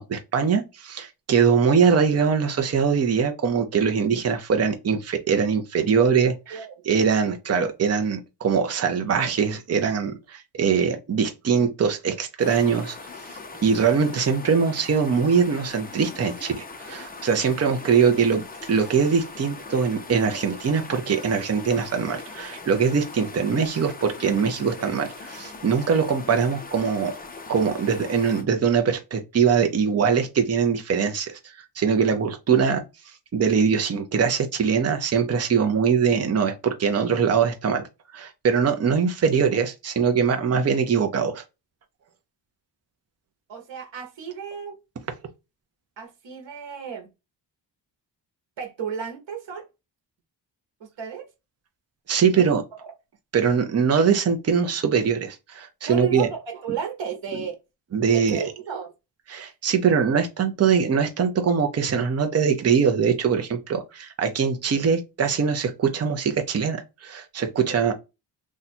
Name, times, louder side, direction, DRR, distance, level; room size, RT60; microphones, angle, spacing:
voice 1, 0.0-6.6 6.9-13.0 13.6-18.4 18.7-27.1 27.5-32.8 33.3-37.8 38.1-41.4 52.1-52.6 53.3-56.3 57.9-58.4 59.3-67.9, right 6 dB, 35° right, 0.6 m, -22 dB
voice 2, 6.5-6.8 43.5-44.8 46.0-47.1 48.6-49.6 50.8-51.3 52.3-52.6 55.9-57.6 58.1-58.9, right 7 dB, 90° right, 1.1 m, -33 dB
sound 1, 12.4-28.4, left 3 dB, 20° left, 0.5 m, -40 dB
2.7 x 2.4 x 4.1 m
wide cardioid pair, 140°, 44 cm